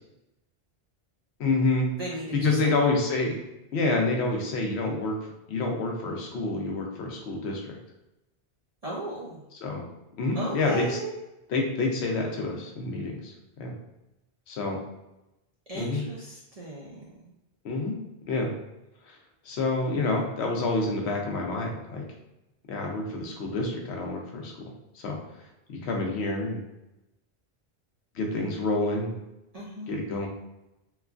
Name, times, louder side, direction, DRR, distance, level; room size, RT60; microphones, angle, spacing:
voice 1, 1.4-1.9 2.3-3.3 3.7-5.1 5.5-7.6 9.6-9.8 10.2-11.0 11.5-13.3 13.6-13.7 14.5-14.8 15.7-16.0 17.6-17.9 18.3-18.5 19.1-19.2 19.5-22.0 22.7-24.5 24.9-25.2 25.8-26.6 28.1-29.2 29.9-30.3, left 2 dB, 85° left, 0 dB, 0.9 m, -27 dB
voice 2, 2.0-2.7 8.8-9.4 10.3-11.2 15.7-17.0 29.5-29.9, right 1 dB, 45° right, -5 dB, 0.5 m, -36 dB
3.1 x 2.2 x 2.4 m, 0.93 s
omnidirectional pair, 1.1 m